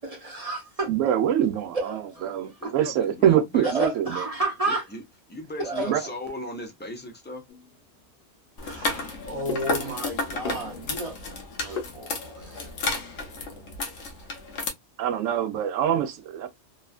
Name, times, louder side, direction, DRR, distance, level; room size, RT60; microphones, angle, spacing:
voice 1, 0.0-0.9 1.7-2.3 2.6-2.7 3.6-4.8 5.6-6.0 8.6-11.2 11.6-12.7, right 2 dB, 35° right, 0.7 m, -31 dB
voice 2, 0.9-4.2 5.9-6.0 15.0-16.5, right 10 dB, 85° right, 0.9 m, -24 dB
voice 3, 2.2-3.7 4.7-5.0 5.3-7.4, left 1 dB, 10° left, 0.5 m, -37 dB
sound 1, 7.5-12.6, left 4 dB, 50° left, 0.9 m, -41 dB
sound 2, 8.6-14.7, left 3 dB, 70° left, 1.1 m, -32 dB
3.0 x 2.3 x 2.3 m
omnidirectional pair, 1.3 m